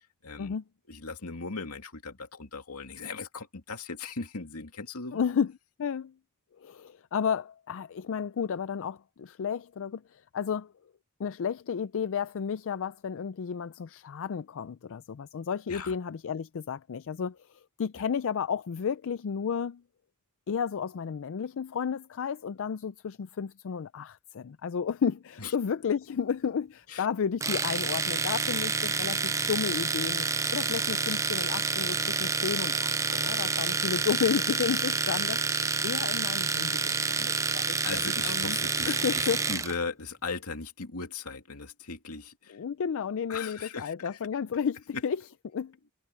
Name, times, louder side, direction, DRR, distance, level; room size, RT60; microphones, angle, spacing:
voice 1, 0.2-0.5 0.9-5.2 15.7-15.9 17.9-18.0 25.4-25.5 26.9-27.1 37.8-42.6 43.3-44.2 44.9-45.0, left 4 dB, 85° left, 2.4 m, -38 dB
voice 2, 5.1-5.5 5.8-6.1 6.6-10.7 11.2-19.8 20.5-30.3 30.5-38.6 38.9-39.4 42.5-45.8, left 7 dB, 65° left, 0.4 m, -32 dB
Domestic sounds home sounds, 27.4-39.7, right 4 dB, 15° right, 0.5 m, -28 dB
head